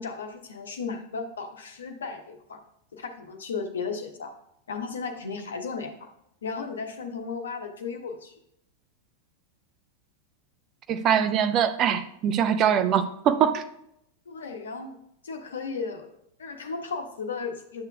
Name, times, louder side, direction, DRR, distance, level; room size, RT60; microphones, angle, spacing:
voice 1, 0.0-2.6 2.9-4.3 4.7-6.1 6.4-8.3 14.3-15.0 15.2-16.1 16.4-17.8, left 5 dB, 65° left, 5 dB, 1.1 m, -35 dB
voice 2, 10.9-13.6, right 8 dB, 35° right, 10 dB, 0.7 m, -23 dB
11.5 x 6.8 x 2.4 m, 0.76 s
figure-of-eight pair, 90°, 0 cm